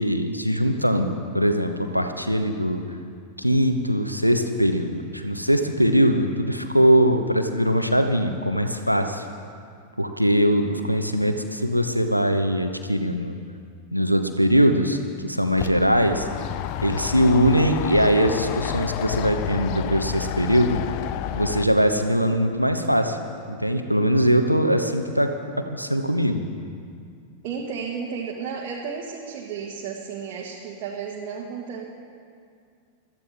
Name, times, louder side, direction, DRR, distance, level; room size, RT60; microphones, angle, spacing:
voice 1, 0.0-2.8 3.4-9.2 10.0-13.4 13.9-16.3 16.8-20.8 21.3-23.2 23.5-25.3 25.7-26.4, equal, 90° right, 6 dB, 1.0 m, -21 dB
sound 1, 15.6-21.7, left 12 dB, 45° left, 0.5 m, -30 dB
voice 2, 27.4-31.9, right 6 dB, 45° right, -3 dB, 1.6 m, -33 dB
21.5 x 14.0 x 3.6 m, 2.3 s
figure-of-eight pair, 90°, 0 cm